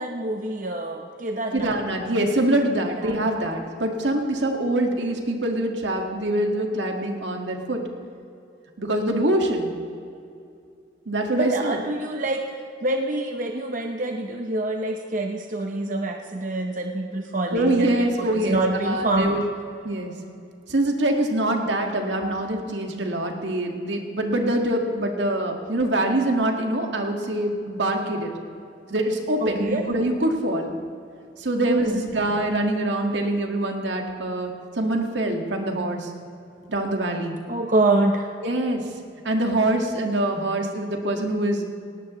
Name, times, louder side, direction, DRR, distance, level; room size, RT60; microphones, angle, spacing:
voice 1, 0.0-1.8 3.0-3.2 11.3-12.5 12.8-19.5 29.4-29.8 31.6-32.0 37.5-38.3, right 2 dB, 45° right, 3 dB, 0.8 m, -26 dB
voice 2, 1.5-7.8 8.8-9.7 11.1-11.8 17.5-19.4 19.8-20.1 20.7-28.3 28.9-30.7 31.4-36.1 36.7-37.4 38.4-38.9 39.2-41.6, right 1 dB, 75° right, 2 dB, 1.9 m, -24 dB
18.5 x 18.0 x 3.1 m, 2.5 s
head